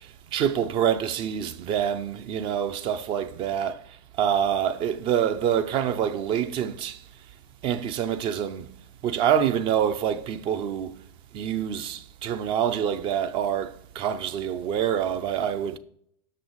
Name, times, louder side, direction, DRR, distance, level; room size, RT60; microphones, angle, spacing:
voice 1, 0.3-3.8 4.2-7.0 7.6-8.7 9.0-10.9 11.3-15.8, right 9 dB, 35° right, 0.5 m, -26 dB
6.5 x 6.0 x 3.1 m
figure-of-eight pair, 90°, 15 cm